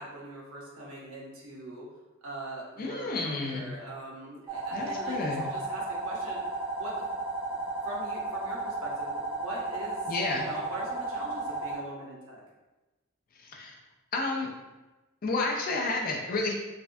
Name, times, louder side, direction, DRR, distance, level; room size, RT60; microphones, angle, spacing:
voice 1, 0.0-1.9 2.2-7.1 7.5-7.6 7.8-12.4, right 1 dB, 85° right, -4 dB, 0.9 m, -42 dB
voice 2, 2.8-3.6 4.7-5.4 10.1-10.4 13.4-13.8 14.1-14.5 15.2-16.5, left 3 dB, 40° left, 1 dB, 0.4 m, -31 dB
sound 1, 4.5-11.8, right 2 dB, 25° right, 0.7 m, -34 dB
3.3 x 2.2 x 2.5 m, 1.1 s
head